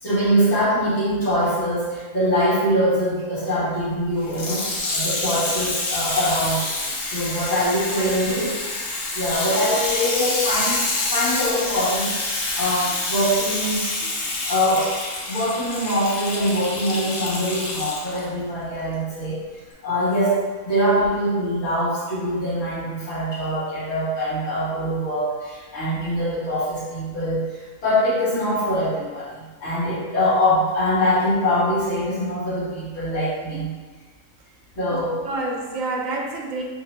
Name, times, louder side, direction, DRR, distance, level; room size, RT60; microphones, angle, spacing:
voice 1, 0.0-6.7 7.0-8.5 9.1-12.1 12.6-14.1 14.5-14.9 15.3-19.4 19.8-33.7 34.7-35.2, equal, 55° left, -10 dB, 1.7 m, -23 dB
Water tap faucet / Sink (filling or washing), 4.2-18.2 18.9-19.0, left 2 dB, 70° left, 1.1 m, -27 dB
voice 2, 8.0-8.4 34.9-36.6, right 2 dB, 75° right, 0 dB, 1.0 m, -29 dB
3.0 x 2.9 x 4.0 m, 1.4 s
omnidirectional pair, 1.4 m